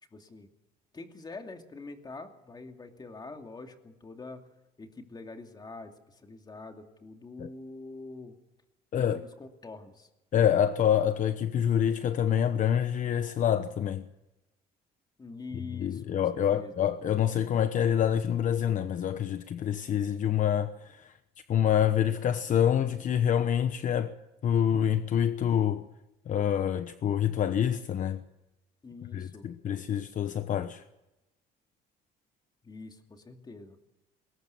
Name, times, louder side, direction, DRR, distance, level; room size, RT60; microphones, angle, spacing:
voice 1, 0.1-0.5 0.9-4.5 4.8-8.4 8.9-10.1 15.2-16.7 28.8-29.5 32.6-33.9, left 3 dB, 25° left, 2.6 m, -45 dB
voice 2, 10.3-14.0 15.8-21.1 21.5-24.1 24.4-25.8 26.3-28.2 29.1-30.8, left 9 dB, 50° left, 1.0 m, -26 dB
21.0 x 18.0 x 7.1 m
cardioid pair, 110°, 17 cm